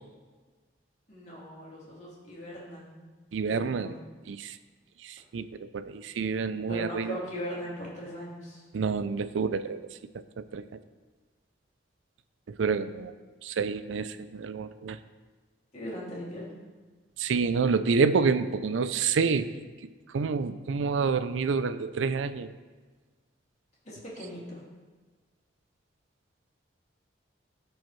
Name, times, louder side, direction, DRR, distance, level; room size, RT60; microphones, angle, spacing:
voice 1, 1.1-3.1 3.5-4.0 6.7-8.6 15.7-16.5 23.8-24.6, equal, 35° left, -6 dB, 2.3 m, -39 dB
voice 2, 3.3-3.9 4.3-4.6 5.0-7.2 8.7-9.8 10.4-10.6 12.6-13.1 13.4-15.0 17.2-19.5 20.1-22.5, right 5 dB, 90° right, 13 dB, 0.4 m, -28 dB
14.0 x 4.7 x 3.1 m, 1.4 s
head